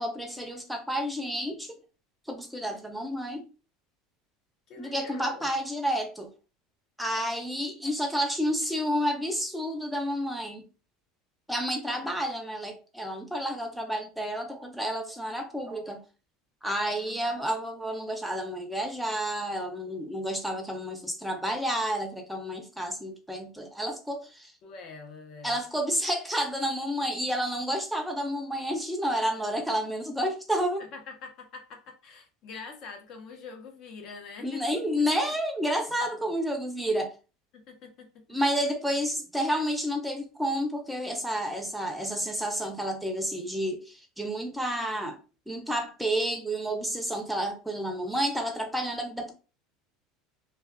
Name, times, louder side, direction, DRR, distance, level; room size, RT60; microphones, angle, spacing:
voice 1, 0.0-1.8 2.3-3.4 4.8-6.3 7.0-10.6 11.5-16.0 16.6-24.5 25.4-30.8 34.4-37.1 38.3-45.2 45.5-49.3, equal, ahead, 0.6 m, -30 dB
voice 2, 4.7-5.5 11.9-12.2 16.9-17.3 24.6-25.6 30.8-34.6 37.5-38.3, left 5 dB, 55° left, 0.8 m, -45 dB
2.4 x 2.3 x 2.3 m
supercardioid pair, 100°, 0 cm